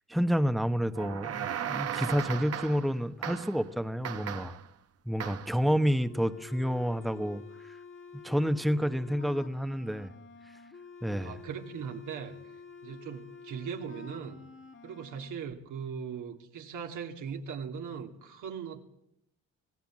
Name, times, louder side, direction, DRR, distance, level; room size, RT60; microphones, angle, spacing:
voice 1, 0.1-4.6 5.1-7.8 8.1-10.1 11.0-11.4, equal, ahead, 1.0 m, -29 dB
sound 1, 0.9-2.9 3.2-3.6 4.0-4.7 5.2-5.6, right 9 dB, 50° right, 1.1 m, -36 dB
sound 2, 6.0-15.3, left 5 dB, 40° left, 2.0 m, -49 dB
voice 2, 11.2-12.3 12.8-14.4 14.8-18.8, right 7 dB, 80° right, 2.6 m, -39 dB
26.5 x 17.0 x 7.4 m
cardioid pair, 90°, 30 cm